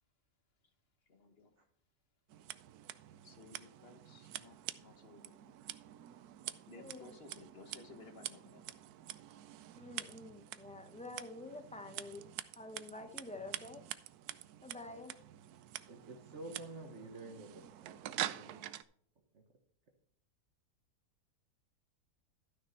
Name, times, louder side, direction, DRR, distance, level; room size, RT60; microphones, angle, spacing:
voice 1, 1.1-1.5 3.2-5.2 5.5-5.6 6.7-8.8, left 3 dB, 40° left, 6 dB, 1.5 m, -57 dB
Scissors, 2.3-18.8, right 13 dB, 75° right, 1.1 m, -47 dB
voice 2, 6.7-7.1 9.8-12.3 12.6-13.8 14.6-15.1, left 2 dB, 10° left, 7 dB, 0.5 m, -48 dB
voice 3, 15.9-18.6 19.3-19.4, right 2 dB, 50° right, 3 dB, 1.5 m, -50 dB
12.5 x 6.3 x 4.3 m, 0.62 s
omnidirectional pair, 1.7 m